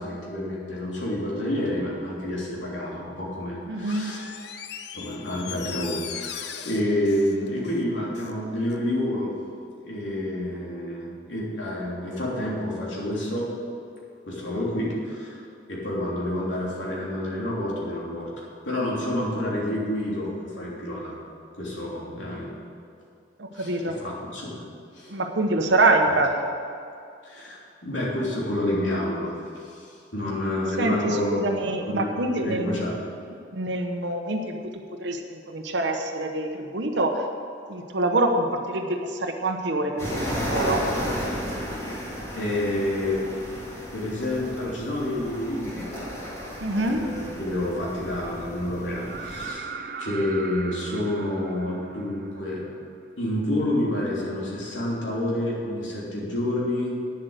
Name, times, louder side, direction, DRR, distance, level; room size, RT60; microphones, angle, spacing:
voice 1, 0.0-4.2 4.9-9.3 9.8-13.5 14.2-15.4 15.7-21.1 21.5-22.5 23.5-24.6 24.9-25.1 27.2-31.5 31.9-32.9 42.3-43.2 43.9-45.9 46.8-49.7 50.0-52.6 53.2-56.9, left 1 dB, 85° left, -5 dB, 3.3 m, -29 dB
voice 2, 3.7-4.1 23.4-24.0 25.1-26.5 30.8-33.0 33.5-34.7 35.0-37.2 37.7-40.8 46.6-47.1, right 2 dB, 75° right, 3 dB, 0.9 m, -25 dB
Door, 3.8-8.4 8.7-8.8, left 8 dB, 60° left, 0.7 m, -39 dB
sound 1, 40.0-49.5, equal, 15° left, 2.8 m, -33 dB
sound 2, 49.0-52.8 54.7-54.8, right 5 dB, 50° right, 0.6 m, -38 dB
9.7 x 7.6 x 8.1 m, 2.5 s
head